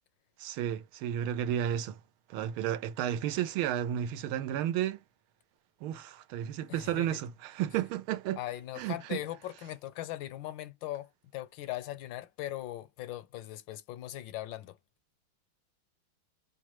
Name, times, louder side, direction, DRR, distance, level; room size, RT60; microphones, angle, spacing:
voice 1, 0.4-2.0 2.3-5.0 5.8-8.4 8.8-9.2, right 11 dB, 90° right, 1.5 m, -32 dB
voice 2, 6.7-7.2 8.4-14.8, left 14 dB, 75° left, 1.2 m, -40 dB
5.9 x 2.1 x 3.0 m
omnidirectional pair, 2.3 m